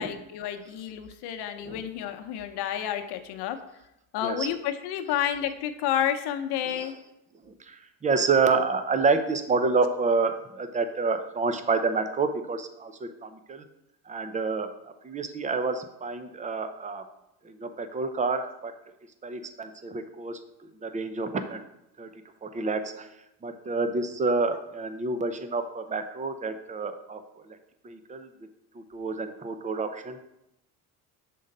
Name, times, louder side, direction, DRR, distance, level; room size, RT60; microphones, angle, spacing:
voice 1, 0.0-3.6 4.1-6.9, left 10 dB, 75° left, 7 dB, 0.9 m, -30 dB
voice 2, 7.5-13.6 14.1-14.7 15.0-17.0 17.4-18.7 19.2-20.4 20.8-21.6 22.0-22.1 22.4-23.1 23.4-27.2 27.5-27.6 27.8-28.3 28.8-30.2, right 4 dB, 20° right, 9 dB, 0.6 m, -28 dB
6.8 x 3.8 x 5.3 m, 0.85 s
cardioid pair, 110°, 40 cm